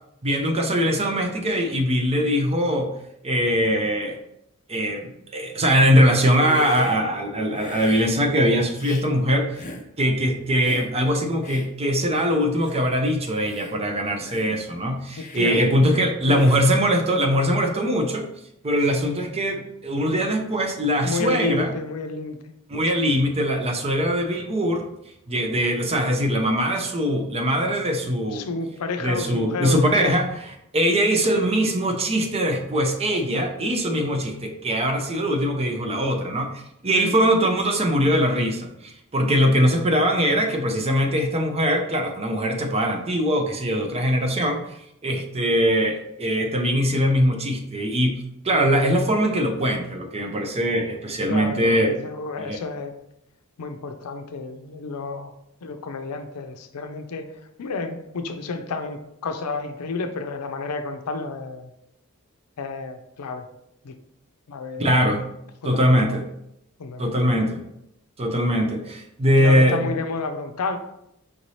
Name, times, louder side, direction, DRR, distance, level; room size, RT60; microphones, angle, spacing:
voice 1, 0.2-2.9 3.2-4.2 4.7-9.6 10.0-18.3 18.6-21.7 22.7-24.9 25.3-28.5 29.0-30.3 30.7-44.6 45.0-51.9 52.4-52.6 64.8-65.2 65.6-66.2 67.0-67.6 68.2-69.9, equal, 25° right, 4 dB, 0.5 m, -22 dB
Hiss, 6.2-7.0 7.5-8.2 8.7-9.1 9.5-9.9 10.6-10.9 11.4-11.7 12.2-12.3 12.6-12.8 13.3-13.7 14.2-14.6 15.1-15.5 16.3-16.7, left 2 dB, 35° left, 0.5 m, -39 dB
voice 2, 15.2-15.6 16.0-16.5 21.0-22.4 22.7-22.8 28.3-30.1 36.9-37.1 51.3-52.9 53.6-55.3 55.6-57.3 57.6-61.7 62.6-63.5 63.8-64.0 64.5-64.9 65.6-66.2 66.8-67.4 69.4-70.8, left 3 dB, 90° left, 7 dB, 0.5 m, -31 dB
5.0 x 2.7 x 3.1 m, 0.79 s
head